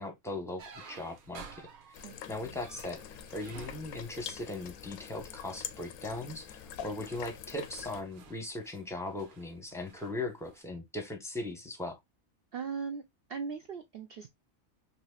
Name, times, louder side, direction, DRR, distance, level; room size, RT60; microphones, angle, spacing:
voice 1, 0.0-1.7 2.3-12.0, left 2 dB, 5° left, 0.6 m, -39 dB
sound 1, 0.6-5.2 5.9-6.2 6.7-10.6, right 5 dB, 90° right, 1.3 m, -53 dB
sound 2, 1.9-8.0, left 9 dB, 85° left, 1.0 m, -45 dB
voice 2, 2.0-2.6 12.5-13.0 13.3-14.3, right 6 dB, 70° right, 0.5 m, -39 dB
4.1 x 2.8 x 2.3 m
omnidirectional pair, 1.5 m